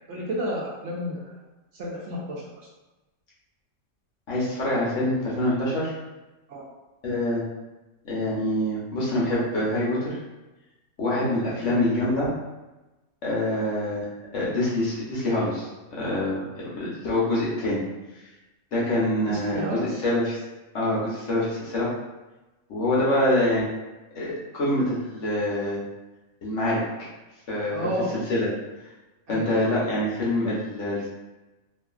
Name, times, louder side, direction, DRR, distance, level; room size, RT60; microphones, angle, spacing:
voice 1, 0.1-1.3 1.7-2.4 6.5-6.7 11.5-11.8 19.3-20.0 27.7-28.1 29.3-29.6, equal, 65° right, -4 dB, 0.8 m, -31 dB
voice 2, 4.3-5.9 7.0-7.4 8.0-10.2 11.0-12.3 13.2-14.1 14.3-15.7 16.0-16.4 16.8-17.8 18.7-20.4 20.7-21.9 22.7-23.7 24.2-25.8 26.4-26.8 27.5-27.8 28.3-28.5 29.3-31.1, left 1 dB, 60° left, -7 dB, 1.2 m, -25 dB
2.9 x 2.5 x 2.3 m, 1.1 s
omnidirectional pair, 1.5 m